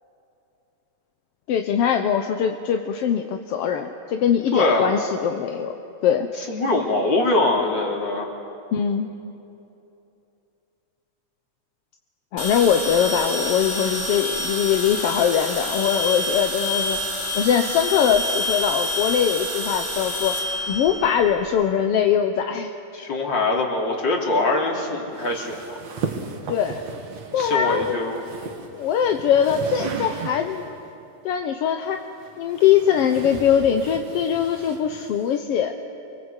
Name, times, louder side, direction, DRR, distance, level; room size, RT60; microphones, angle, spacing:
voice 1, 1.5-5.7 6.0-6.3 8.7-9.1 12.3-17.0 17.3-20.3 20.7-22.7 26.5-26.8 27.3-28.1 28.7-30.8 31.2-32.0 32.4-35.7, left 8 dB, 65° left, 6 dB, 1.6 m, -22 dB
voice 2, 4.5-4.9 6.5-8.3 22.9-25.7 27.4-28.2, left 2 dB, 40° left, 0 dB, 3.7 m, -23 dB
sound 1, 12.4-21.6, left 1 dB, 5° left, 4.8 m, -27 dB
sound 2, 25.1-30.8 31.8-35.4, right 6 dB, 65° right, 3.0 m, -36 dB
29.0 x 23.5 x 8.1 m, 2.8 s
omnidirectional pair, 3.3 m